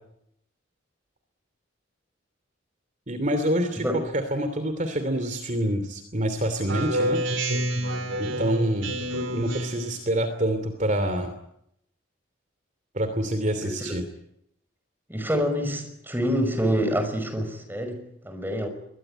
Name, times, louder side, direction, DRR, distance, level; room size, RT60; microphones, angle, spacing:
voice 1, 3.1-3.8 4.1-7.2 8.2-8.9 9.3-11.3 12.9-14.0, right 1 dB, 40° right, 9 dB, 2.8 m, -26 dB
Speech synthesizer, 6.7-10.0, right 1 dB, 80° right, 3.6 m, -28 dB
voice 2, 13.6-14.0 15.1-18.7, equal, 10° right, 6 dB, 5.9 m, -27 dB
25.5 x 22.0 x 9.1 m, 0.77 s
head